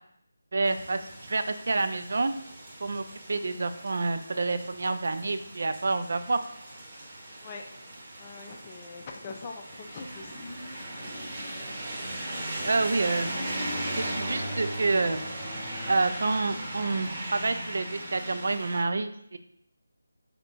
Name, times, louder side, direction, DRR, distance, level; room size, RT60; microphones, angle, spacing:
voice 1, 0.5-1.0 1.3-2.3 2.8-6.4 12.6-13.3 14.0-15.2 15.9-19.4, right 3 dB, 55° right, 9 dB, 0.4 m, -28 dB
sound 1, 0.6-18.8, right 1 dB, 30° right, 0.8 m, -38 dB
voice 2, 8.2-10.5, left 4 dB, 25° left, 3 dB, 0.5 m, -42 dB
3.4 x 2.7 x 4.1 m, 0.70 s
figure-of-eight pair, 160°, 0 cm